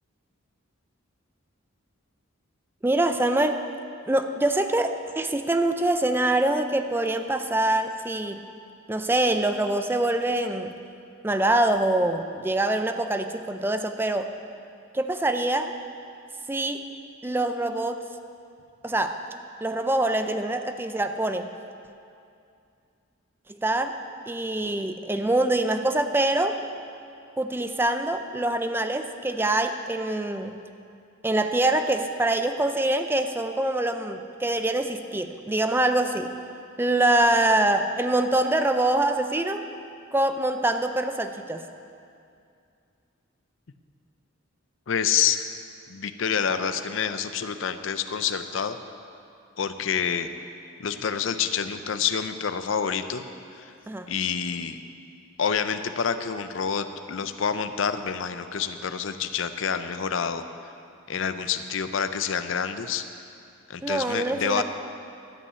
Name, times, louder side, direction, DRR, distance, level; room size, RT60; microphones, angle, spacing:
voice 1, 2.8-3.6 4.1-8.4 8.9-10.7 11.2-14.3 14.9-15.7 16.5-16.8 17.2-18.0 18.8-19.2 19.6-21.5 23.6-24.0 24.3-26.6 27.4-30.5 31.2-36.3 36.8-39.7 40.1-41.7 53.9-54.1 63.8-64.6, right 1 dB, 10° right, 7 dB, 0.4 m, -24 dB
voice 2, 44.9-45.4 45.9-48.8 49.6-50.3 50.8-53.2 53.5-53.7 54.1-54.8 55.4-60.4 61.1-63.0 63.7-64.6, left 7 dB, 65° left, 10 dB, 0.5 m, -27 dB
12.5 x 5.5 x 8.2 m, 2.5 s
head